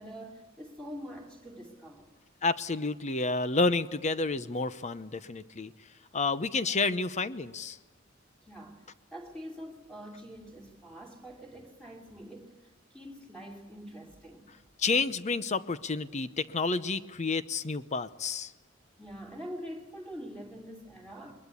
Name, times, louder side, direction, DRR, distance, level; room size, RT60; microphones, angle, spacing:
voice 1, 0.0-2.1 8.4-14.5 19.0-21.4, equal, 5° left, 3.0 m, -45 dB
voice 2, 2.4-5.7 6.1-7.8 14.8-18.5, left 3 dB, 35° left, 0.8 m, -30 dB
22.0 x 21.0 x 8.5 m
head